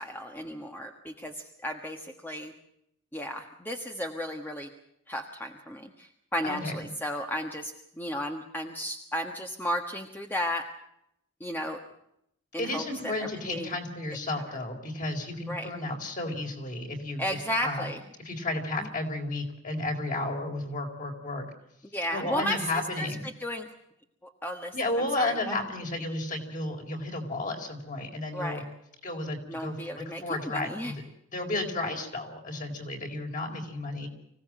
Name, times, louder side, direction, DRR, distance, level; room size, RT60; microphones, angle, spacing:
voice 1, 0.0-2.5 3.1-4.7 5.1-10.7 11.4-11.8 12.5-13.8 15.5-15.7 17.2-18.0 21.9-23.1 23.4-23.7 24.4-24.7 25.2-25.6 28.3-28.6 29.5-30.9, equal, 10° left, 3 dB, 1.3 m, -34 dB
voice 2, 6.4-6.8 12.6-17.9 18.2-21.4 22.1-23.2 24.7-28.6 29.0-31.0 31.3-34.1, left 2 dB, 40° left, 3 dB, 4.4 m, -33 dB
25.5 x 17.0 x 7.6 m, 0.78 s
head